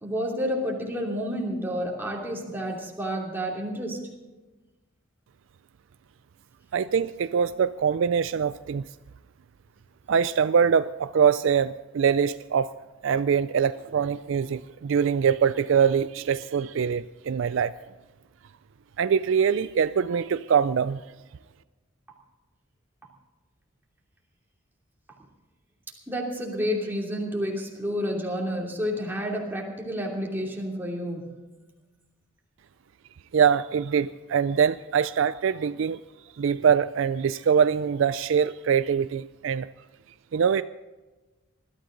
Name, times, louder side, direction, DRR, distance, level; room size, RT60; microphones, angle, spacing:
voice 1, 0.0-4.1 26.1-31.3, equal, 10° right, -2 dB, 2.8 m, -30 dB
voice 2, 6.7-8.9 10.1-12.7 13.0-17.7 19.0-21.0 33.3-36.0 36.4-39.7 40.3-40.6, right 7 dB, 65° right, 13 dB, 0.4 m, -23 dB
20.5 x 13.0 x 3.9 m, 1.2 s
head